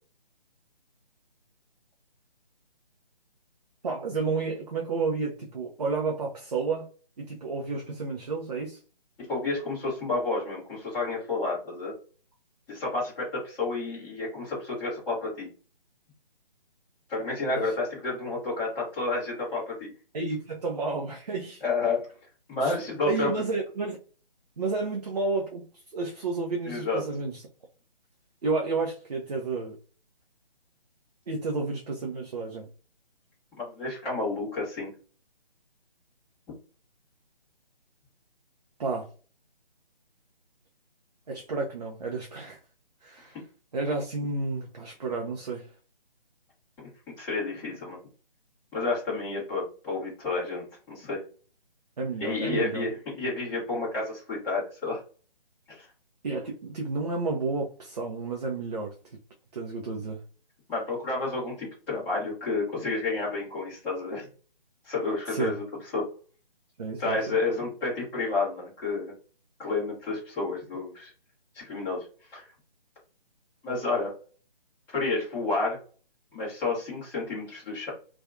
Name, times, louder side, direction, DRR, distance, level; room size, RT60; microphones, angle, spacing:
voice 1, 3.8-6.9 7.2-8.8 17.5-17.7 20.1-21.6 22.6-22.8 23.0-24.0 24.6-27.4 28.4-29.8 31.3-32.7 38.8-39.1 41.3-42.6 43.0-43.4 43.7-45.7 52.0-52.8 56.2-58.9 59.5-60.2 65.3-65.5 66.8-67.4, right 3 dB, 45° right, 0.5 m, -31 dB
voice 2, 9.2-11.9 12.7-15.5 17.1-19.9 21.6-22.1 22.5-23.3 26.7-27.0 33.6-34.9 47.2-48.0 48.7-51.2 52.2-55.0 55.7-55.9 60.7-64.3 64.8-65.6 65.9-66.1 67.0-69.1 69.6-71.1 71.5-72.0 72.3-72.5 73.6-74.1 74.9-75.8 76.3-77.9, left 3 dB, 5° left, 0.9 m, -30 dB
2.7 x 2.3 x 2.4 m
figure-of-eight pair, 150°, 29 cm